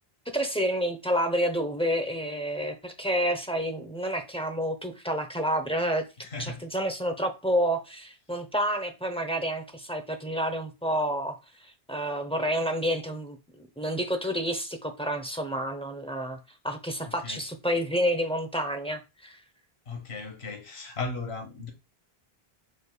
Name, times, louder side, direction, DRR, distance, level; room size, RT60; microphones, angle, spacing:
voice 1, 0.3-6.0 6.4-11.4 11.9-16.4 16.6-19.4, equal, 10° left, 0.5 m, -29 dB
voice 2, 6.2-6.7 17.0-17.4 19.9-21.7, left 3 dB, 80° left, 1.4 m, -36 dB
5.1 x 4.0 x 2.3 m
omnidirectional pair, 1.1 m